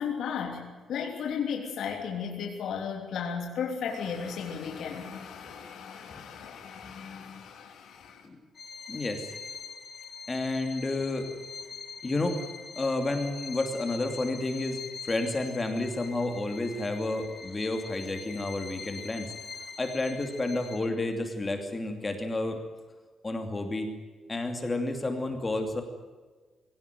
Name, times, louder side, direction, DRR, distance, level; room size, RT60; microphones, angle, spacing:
voice 1, 0.0-8.3, left 7 dB, 70° left, 1 dB, 3.3 m, -35 dB
Bowed string instrument, 8.6-21.1, left 5 dB, 40° left, 3.4 m, -43 dB
voice 2, 8.9-9.2 10.3-11.3 12.0-12.4 12.8-14.8 15.0-19.3 19.8-22.6 23.2-23.9 24.3-25.8, left 2 dB, 20° left, 5 dB, 2.8 m, -30 dB
22.5 x 18.0 x 9.3 m, 1.3 s
wide cardioid pair, 175°, 0 cm